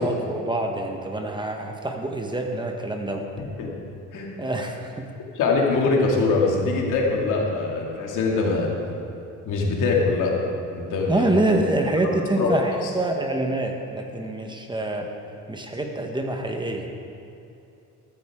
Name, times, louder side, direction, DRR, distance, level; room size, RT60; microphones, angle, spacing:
voice 1, 0.0-3.2 4.4-5.1 11.1-15.1 15.5-16.9, right 2 dB, 15° right, 3 dB, 1.1 m, -26 dB
voice 2, 3.4-3.7 4.1-4.3 5.3-8.7 9.4-10.3 10.7-11.6 12.4-12.5, left 3 dB, 75° left, -1 dB, 2.4 m, -23 dB
13.5 x 13.0 x 3.6 m, 2.7 s
cardioid pair, 115°, 31 cm